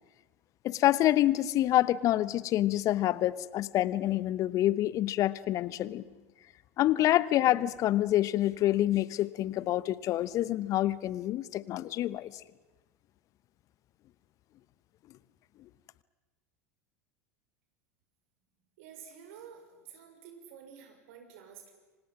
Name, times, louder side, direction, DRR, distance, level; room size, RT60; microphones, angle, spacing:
voice 1, 0.6-6.0 6.8-12.3, left 14 dB, 45° left, 19 dB, 1.0 m, -27 dB
voice 2, 18.8-21.7, right 7 dB, 60° right, 5 dB, 5.9 m, -50 dB
28.0 x 25.0 x 6.1 m, 1.3 s
figure-of-eight pair, 80°, 8 cm